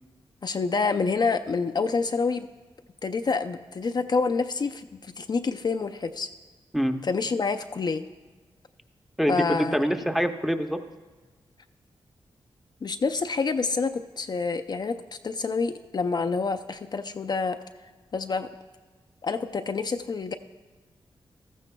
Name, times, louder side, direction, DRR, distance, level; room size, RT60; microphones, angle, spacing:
voice 1, 0.4-2.5 3.0-6.3 7.0-8.0 9.3-9.8 12.8-17.6 18.1-18.5 19.2-20.3, left 4 dB, 45° left, 7 dB, 0.4 m, -27 dB
voice 2, 9.2-10.8, equal, ahead, 6 dB, 0.7 m, -25 dB
15.0 x 13.5 x 2.3 m, 1.3 s
cardioid pair, 70°, 10 cm